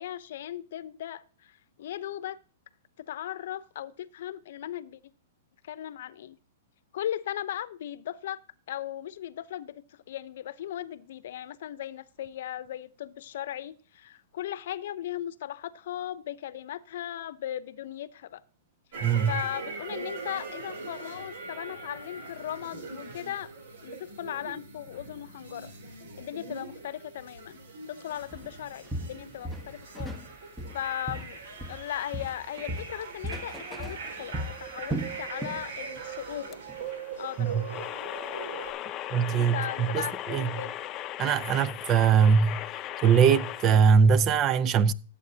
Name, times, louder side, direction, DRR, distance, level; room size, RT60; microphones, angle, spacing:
voice 1, 0.0-2.4 3.0-5.0 5.6-6.4 6.9-8.4 8.7-18.4 19.3-23.5 23.8-25.7 26.2-27.6 27.9-30.2 30.7-31.4 31.7-36.6 37.2-37.9 39.3-40.7, left 11 dB, 65° left, 0.8 m, -37 dB
sound 1, 18.9-38.7, right 4 dB, 70° right, 5.2 m, -41 dB
voice 2, 19.0-19.3 37.4-37.6 39.1-40.5 41.2-42.6 43.0-44.9, right 6 dB, 25° right, 0.6 m, -22 dB
Walk footsteps, 28.3-28.5 28.9-30.3 30.6-31.9 32.1-35.7 36.0-36.2 36.7-36.8, right 1 dB, 5° right, 1.2 m, -36 dB
sound 2, 36.5-44.0, left 13 dB, 25° left, 0.7 m, -38 dB
16.0 x 8.4 x 2.8 m
hypercardioid pair, 150°, 0 cm